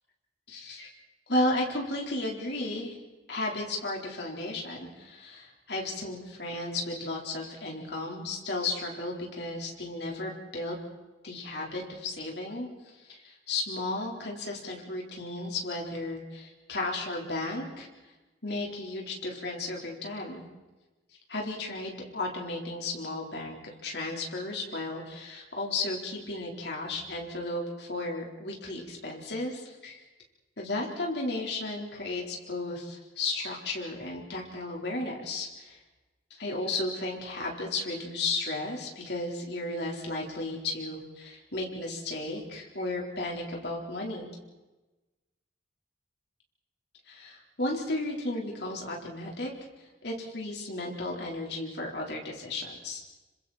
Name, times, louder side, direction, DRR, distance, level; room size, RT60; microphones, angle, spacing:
voice 1, 0.5-0.9 1.3-3.0 3.3-10.7 11.2-12.7 13.1-17.9 18.4-20.4 21.3-30.0 30.6-35.8 36.3-44.3 47.1-49.5 50.0-53.0, left 2 dB, 65° left, -1 dB, 4.3 m, -34 dB
27.5 x 25.5 x 4.4 m, 1.1 s
head